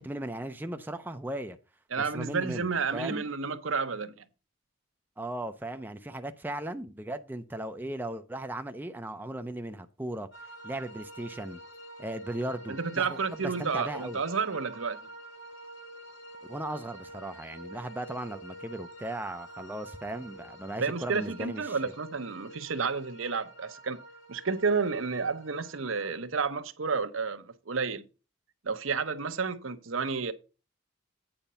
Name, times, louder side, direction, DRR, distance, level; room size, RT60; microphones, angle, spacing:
voice 1, 0.0-1.6 2.0-3.3 5.2-10.3 10.6-11.6 12.0-14.2 16.5-21.9, right 1 dB, 10° right, 0.5 m, -37 dB
voice 2, 1.9-4.1 12.7-15.0 20.8-24.0 24.3-28.0 28.6-30.3, right 5 dB, 75° right, 0.9 m, -31 dB
sound 1, 10.3-26.2, right 1 dB, 65° left, 1.8 m, -48 dB
8.9 x 5.1 x 5.5 m
head